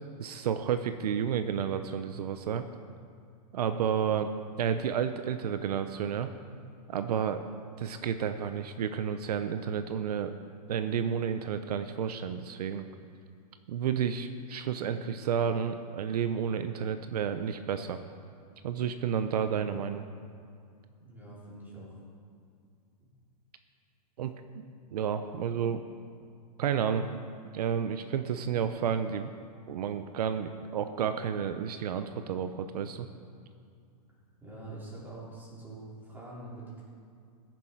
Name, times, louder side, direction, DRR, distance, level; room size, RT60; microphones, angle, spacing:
voice 1, 0.2-2.6 3.5-4.3 4.6-6.3 6.9-7.4 7.8-10.3 10.7-12.8 13.7-18.0 18.6-20.0 24.2-24.3 24.9-25.8 26.6-27.1 27.5-29.3 29.7-33.1, right 8 dB, 75° right, 9 dB, 0.8 m, -31 dB
voice 2, 21.0-22.0 23.0-23.1 34.4-36.8, right 2 dB, 10° right, -6 dB, 4.0 m, -45 dB
15.0 x 10.5 x 4.6 m, 2.3 s
hypercardioid pair, 145°, 20 cm